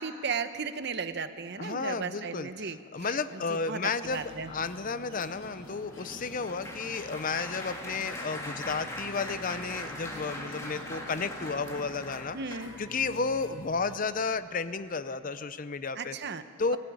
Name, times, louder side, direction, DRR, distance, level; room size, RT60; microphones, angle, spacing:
voice 1, 0.0-4.5 12.3-12.7 16.0-16.4, right 5 dB, 55° right, 10 dB, 1.0 m, -36 dB
voice 2, 1.6-12.4 12.8-16.2 16.6-16.8, left 4 dB, 40° left, 13 dB, 0.6 m, -32 dB
sound 1, 3.0-12.0, right 1 dB, 25° right, 1.8 m, -50 dB
sound 2, 4.0-14.0, left 2 dB, 65° left, 1.1 m, -50 dB
Applause, 4.7-13.0 13.6-13.9 14.2-14.4, left 1 dB, 15° left, 2.6 m, -42 dB
19.5 x 16.5 x 9.5 m, 2.4 s
head